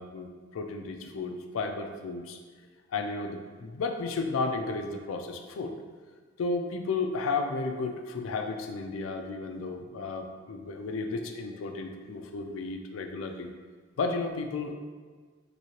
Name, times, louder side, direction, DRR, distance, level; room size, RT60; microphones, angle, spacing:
voice 1, 0.0-2.4 2.9-5.7 6.4-13.5 14.0-14.7, left 3 dB, 90° left, 5 dB, 0.3 m, -33 dB
3.0 x 2.7 x 2.8 m, 1.5 s
head